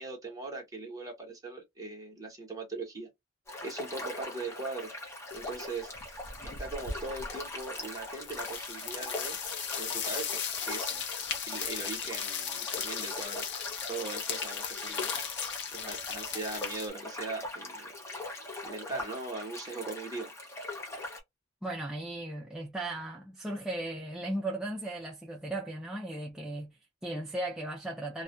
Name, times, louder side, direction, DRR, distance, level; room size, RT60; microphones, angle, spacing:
voice 1, 0.0-3.1 3.6-4.9 5.3-5.9 6.4-9.4 9.8-10.9 11.5-13.4 13.9-15.1 15.7-17.9 18.6-20.3, right 3 dB, 20° right, 0.9 m, -40 dB
sound 1, 3.5-21.2, left 2 dB, 15° left, 0.8 m, -42 dB
sound 2, 5.3-5.7 5.9-16.9, left 7 dB, 65° left, 0.6 m, -37 dB
voice 2, 21.6-28.2, right 1 dB, 5° right, 0.3 m, -37 dB
2.3 x 2.1 x 2.4 m
head